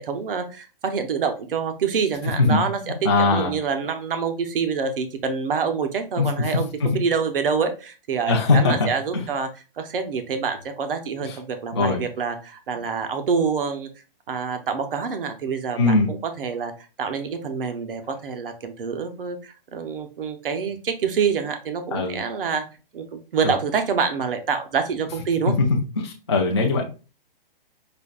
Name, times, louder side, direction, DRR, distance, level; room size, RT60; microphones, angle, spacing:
voice 1, 0.0-9.5 9.8-13.9 14.3-16.7 17.0-22.6 22.9-25.5, right 6 dB, 65° right, 7 dB, 0.7 m, -26 dB
voice 2, 2.4-3.6 6.2-6.3 6.8-6.9 8.3-9.3 11.2-11.4 11.7-12.0 15.8-16.1 21.9-22.2 23.4-23.5 26.0-26.8, left 3 dB, 30° left, -1 dB, 0.4 m, -21 dB
5.1 x 2.2 x 2.3 m, 0.34 s
hypercardioid pair, 180°, 29 cm